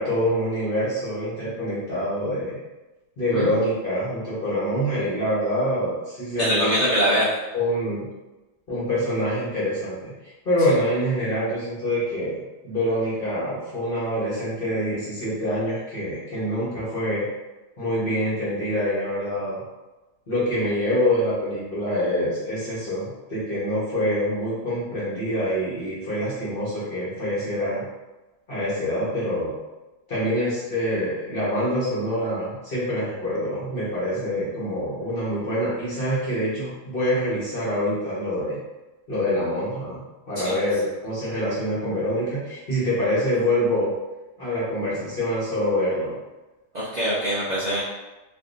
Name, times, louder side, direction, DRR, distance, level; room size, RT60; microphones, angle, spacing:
voice 1, 0.0-2.6 3.2-7.2 7.5-8.0 8.7-10.1 10.4-17.3 17.8-19.6 20.3-27.8 28.5-29.5 30.1-38.6 39.1-43.9 44.4-46.1, equal, 40° left, -9 dB, 1.1 m, -25 dB
voice 2, 6.4-7.3 40.4-40.5 46.7-47.8, equal, 45° right, -10 dB, 0.5 m, -23 dB
3.4 x 2.6 x 2.5 m, 1.1 s
omnidirectional pair, 1.7 m